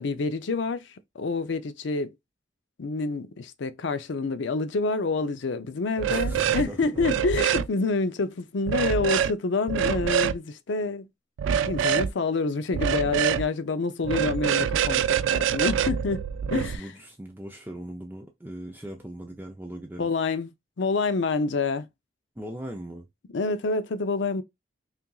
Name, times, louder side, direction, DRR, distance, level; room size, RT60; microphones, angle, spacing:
voice 1, 0.0-2.1 2.8-11.1 11.6-16.8 20.0-20.5 20.8-21.9 23.3-24.4, left 3 dB, 75° left, 0.5 m, -27 dB
sound 1, 6.0-6.7 7.0-7.7 8.7-9.3 9.7-10.4 11.4-12.1 12.7-13.4 14.0-16.7, right 8 dB, 85° right, 0.3 m, -25 dB
voice 2, 6.1-7.0 16.5-20.1 22.4-23.1, right 1 dB, 10° right, 0.5 m, -39 dB
5.7 x 2.5 x 2.3 m
head